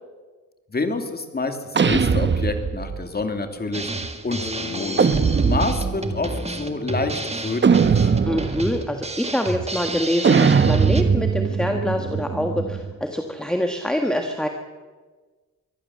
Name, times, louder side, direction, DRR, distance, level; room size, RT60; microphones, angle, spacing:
voice 1, 0.7-5.1 5.4-8.1, left 3 dB, 30° left, 6 dB, 2.6 m, -28 dB
sound 1, 1.7-3.0 5.0-6.1 7.6-8.7 10.2-12.9, right 5 dB, 35° right, 0.9 m, -20 dB
Drum kit, 3.7-11.0, right 2 dB, 20° right, 1.8 m, -31 dB
Bass guitar, 4.4-8.6, left 5 dB, 45° left, 4.2 m, -38 dB
voice 2, 8.3-14.5, left 1 dB, ahead, 4 dB, 1.5 m, -25 dB
23.0 x 15.5 x 7.5 m, 1.4 s
wide cardioid pair, 110°, 32 cm